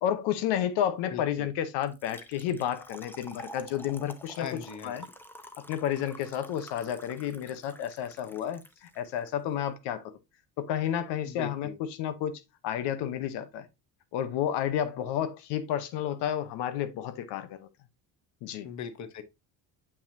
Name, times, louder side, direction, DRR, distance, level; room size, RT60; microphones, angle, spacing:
voice 1, 0.0-4.5 4.8-5.1 5.7-10.1 10.6-11.7 12.0-12.3 12.6-13.7 14.1-17.7 18.4-18.7, left 10 dB, 90° left, 0.9 m, -31 dB
voice 2, 1.1-1.5 4.4-5.0 11.2-11.8 18.6-19.2, left 8 dB, 45° left, 1.0 m, -39 dB
Trickle dribble / Fill (with liquid), 1.8-9.3, equal, 5° left, 0.7 m, -49 dB
7.1 x 5.6 x 2.7 m
cardioid pair, 115°, 40 cm